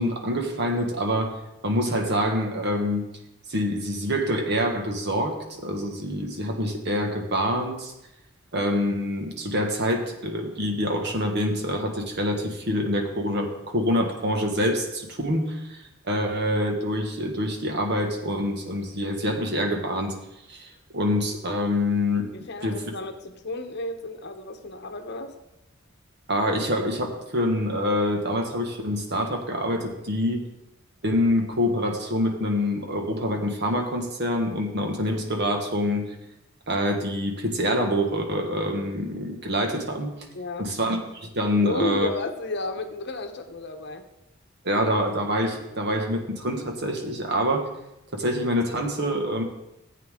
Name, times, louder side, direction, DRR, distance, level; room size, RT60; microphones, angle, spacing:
voice 1, 0.0-1.3 1.6-3.0 3.5-7.9 8.5-20.1 20.5-22.3 22.6-22.8 26.3-30.4 31.0-36.1 36.7-40.2 40.6-42.1 44.6-47.7 48.1-49.4, equal, 55° right, 3 dB, 1.7 m, -26 dB
voice 2, 22.3-25.3 40.3-40.7 41.6-44.1, left 2 dB, 55° left, 7 dB, 1.0 m, -32 dB
14.5 x 8.5 x 3.7 m, 0.89 s
head